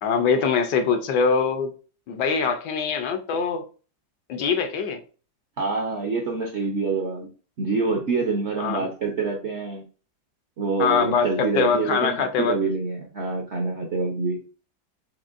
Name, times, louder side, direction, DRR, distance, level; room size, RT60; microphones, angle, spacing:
voice 1, 0.0-1.7 2.1-3.7 4.3-5.0 8.6-8.9 10.8-12.6, left 5 dB, 75° left, 1.2 m, -23 dB
voice 2, 5.6-7.3 7.6-9.8 10.6-12.1 12.4-14.4, right 4 dB, 65° right, 0.7 m, -26 dB
5.2 x 3.7 x 2.4 m
omnidirectional pair, 2.0 m